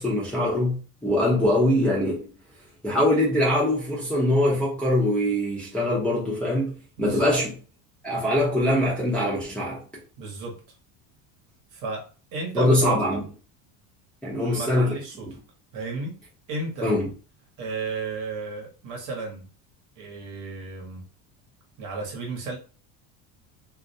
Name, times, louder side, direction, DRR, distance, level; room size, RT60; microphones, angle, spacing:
voice 1, 0.0-2.3 2.8-7.5 8.0-9.8 12.5-13.2 14.2-15.0 16.8-17.0, left 1 dB, 5° left, 0.6 m, -23 dB
voice 2, 7.0-7.4 10.2-10.6 11.7-13.3 14.3-15.4 15.7-16.2 16.5-16.9 17.6-19.5 20.0-21.0 21.8-22.6, right 3 dB, 50° right, 1.0 m, -33 dB
2.4 x 2.1 x 2.6 m
cardioid pair, 150°, 39 cm